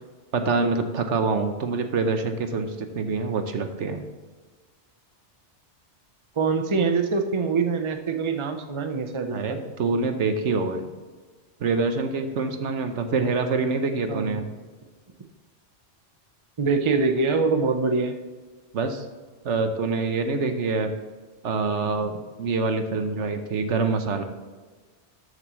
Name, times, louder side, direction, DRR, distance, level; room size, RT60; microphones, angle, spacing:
voice 1, 0.3-4.0 9.3-10.9 11.6-14.5 18.7-19.1 19.4-20.9 21.4-24.2, right 4 dB, 75° right, 7 dB, 1.2 m, -25 dB
voice 2, 6.4-9.6 14.1-14.4 16.6-18.1, right 4 dB, 30° right, 6 dB, 0.7 m, -24 dB
13.0 x 8.0 x 3.1 m, 1.4 s
omnidirectional pair, 1.2 m